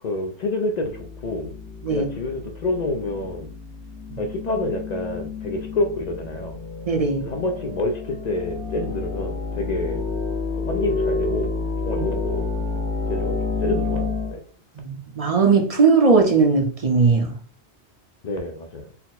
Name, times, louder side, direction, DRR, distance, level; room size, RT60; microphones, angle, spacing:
voice 1, 0.0-1.5 1.9-3.5 4.2-6.6 7.2-10.1 10.6-11.5 11.9-12.5 13.1-14.4 18.2-18.9, left 2 dB, 55° left, 0.5 m, -28 dB
sound 1, 0.9-14.3, left 3 dB, 75° left, 1.6 m, -29 dB
voice 2, 6.9-7.3 11.9-12.0 14.8-17.3, right 4 dB, 40° right, 0.6 m, -19 dB
4.1 x 2.0 x 4.0 m
omnidirectional pair, 1.1 m